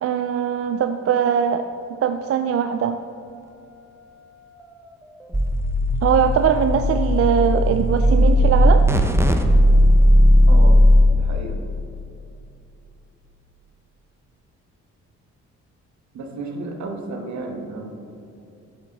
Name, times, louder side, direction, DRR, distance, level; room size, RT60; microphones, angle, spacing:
voice 1, 0.0-1.7 2.0-3.0 6.0-8.8, right 8 dB, 50° right, 8 dB, 0.4 m, -21 dB
sound 1, 5.3-11.0, equal, 10° right, 0.7 m, -15 dB
voice 2, 11.1-11.6 16.1-17.9, right 3 dB, 65° right, 3 dB, 1.5 m, -32 dB
9.4 x 7.2 x 4.1 m, 2.7 s
cardioid pair, 90°, 30 cm